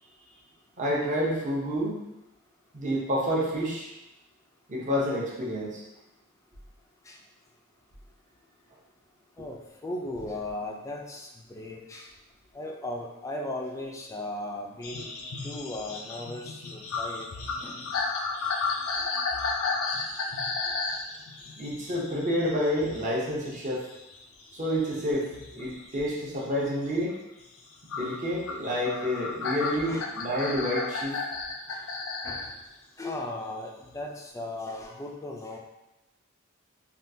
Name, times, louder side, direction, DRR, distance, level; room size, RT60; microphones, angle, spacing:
voice 1, 0.8-2.0 2.7-3.9 4.7-5.8 21.6-23.8 24.5-27.2 27.9-31.1, equal, 35° right, -5 dB, 0.7 m, -29 dB
voice 2, 9.4-12.1 12.5-15.1 15.4-17.3 17.6-17.8 29.9-30.1 31.7-31.8 32.2-32.6 33.0-35.6, left 1 dB, 15° left, 0 dB, 0.3 m, -37 dB
sound 1, 14.8-23.1 23.4-25.8 26.3-26.7 27.9-32.5 33.8-33.9, left 4 dB, 80° left, 0.4 m, -33 dB
3.5 x 2.3 x 2.6 m, 0.96 s
head